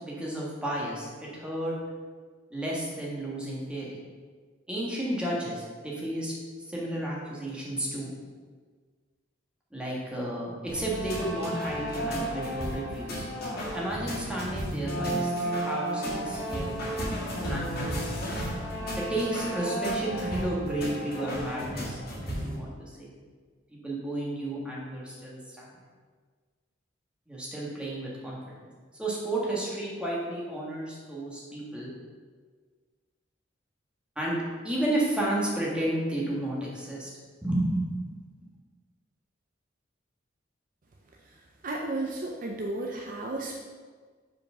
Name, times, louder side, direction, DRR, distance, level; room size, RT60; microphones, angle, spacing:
voice 1, 0.0-1.8 2.5-4.0 4.7-6.3 6.7-8.1 9.7-13.2 13.7-17.9 19.0-23.1 23.7-25.7 27.3-28.5 29.0-31.9 34.2-34.4 34.6-37.1 37.4-38.0, right 1 dB, 5° right, -5 dB, 1.5 m, -32 dB
sound 1, 10.7-22.6, equal, 55° left, 1.9 m, -33 dB
voice 2, 41.6-43.6, right 2 dB, 45° right, 1 dB, 0.5 m, -33 dB
5.1 x 4.7 x 5.4 m, 1.5 s
head